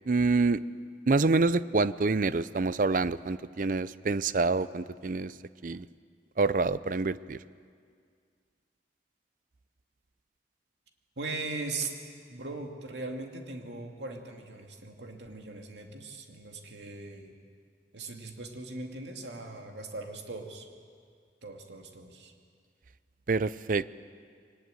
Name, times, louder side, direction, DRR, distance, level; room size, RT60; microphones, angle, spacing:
voice 1, 0.1-0.6 1.1-5.3 5.6-5.8 6.4-7.4 23.3-23.9, right 3 dB, 50° right, 16 dB, 0.5 m, -26 dB
voice 2, 11.2-11.9 12.3-17.4 17.9-20.7 21.4-22.3, right 3 dB, 80° right, 3 dB, 2.4 m, -39 dB
22.5 x 19.0 x 9.1 m, 2.1 s
head